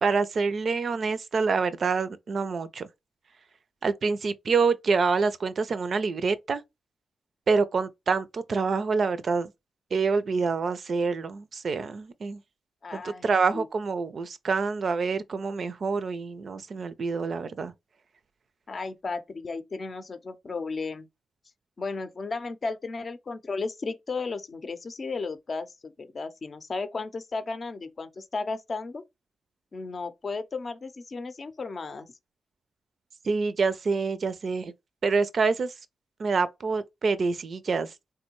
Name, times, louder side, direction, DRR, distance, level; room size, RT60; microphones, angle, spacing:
voice 1, 0.0-2.9 3.8-6.6 7.5-9.5 9.9-12.4 12.9-17.7 33.2-34.7 35.0-35.7 36.2-37.9, right 4 dB, 60° right, 0.4 m, -26 dB
voice 2, 12.8-13.3 13.5-13.7 18.7-21.1 21.8-29.0 29.7-32.1, left 4 dB, 50° left, 0.5 m, -34 dB
3.5 x 2.2 x 2.9 m
hypercardioid pair, 40°, 0 cm